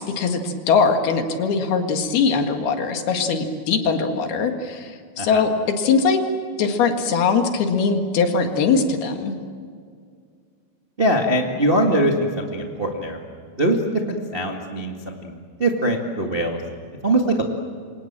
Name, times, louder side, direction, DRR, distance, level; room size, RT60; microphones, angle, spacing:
voice 1, 0.0-4.9 5.2-5.5 5.8-6.2 6.6-9.3, left 5 dB, 75° left, 5 dB, 3.8 m, -21 dB
voice 2, 11.0-13.2 13.6-13.8 14.1-15.3 15.6-16.6 17.0-17.4, right 1 dB, 30° right, 1 dB, 1.0 m, -22 dB
28.5 x 25.5 x 7.6 m, 2.2 s
omnidirectional pair, 4.6 m